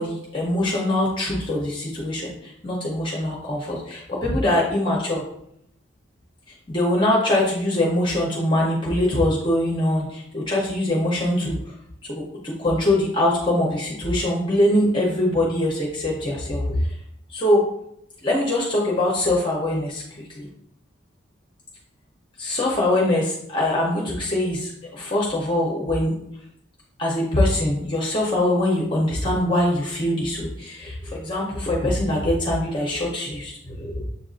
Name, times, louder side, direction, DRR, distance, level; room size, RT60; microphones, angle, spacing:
voice 1, 0.0-5.2 6.7-11.6 12.1-16.8 17.3-17.6 18.2-20.5 22.4-26.1 27.0-34.0, left 1 dB, 25° left, -3 dB, 0.7 m, -23 dB
7.2 x 2.5 x 2.4 m, 0.74 s
head